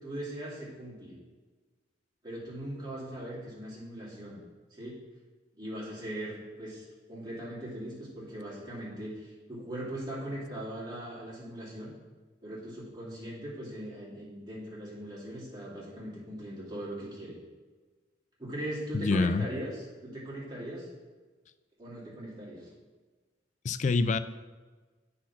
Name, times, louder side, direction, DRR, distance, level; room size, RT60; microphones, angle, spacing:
voice 1, 0.0-1.1 2.2-4.4 4.7-4.9 5.6-11.9 12.4-17.4 18.4-20.9 21.8-22.7, right 1 dB, 25° right, -7 dB, 2.5 m, -40 dB
voice 2, 18.9-19.4 23.6-24.2, left 3 dB, 40° left, 12 dB, 0.3 m, -26 dB
8.4 x 4.2 x 5.8 m, 1.4 s
head